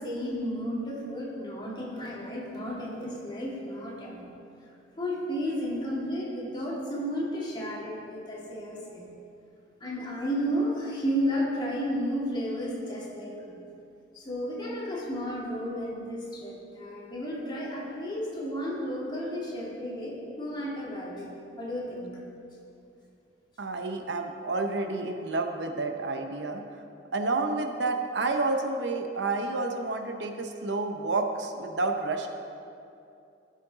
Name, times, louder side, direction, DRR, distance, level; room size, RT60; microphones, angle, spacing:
voice 1, 0.0-4.3 5.0-9.0 9.8-13.6 14.1-21.3 21.6-22.1, equal, 25° left, -5 dB, 2.1 m, -33 dB
voice 2, 23.6-26.8 27.1-32.3, right 3 dB, 70° right, 5 dB, 0.8 m, -30 dB
14.5 x 6.4 x 3.9 m, 2.6 s
head